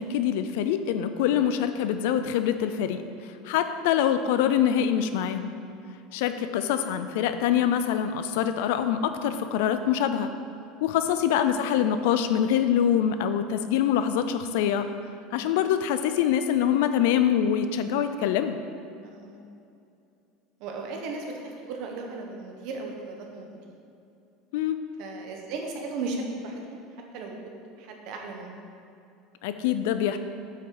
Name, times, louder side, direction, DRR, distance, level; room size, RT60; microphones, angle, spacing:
voice 1, 0.0-3.0 3.4-5.5 6.1-10.3 10.8-14.9 15.3-18.6 24.5-24.8 29.4-30.2, left 9 dB, 75° left, 9 dB, 0.4 m, -24 dB
voice 2, 20.6-23.8 25.0-26.8 27.1-27.4 27.8-28.6, right 3 dB, 55° right, 2 dB, 1.1 m, -36 dB
8.0 x 5.4 x 3.9 m, 2.6 s
cardioid pair, 160°, 0 cm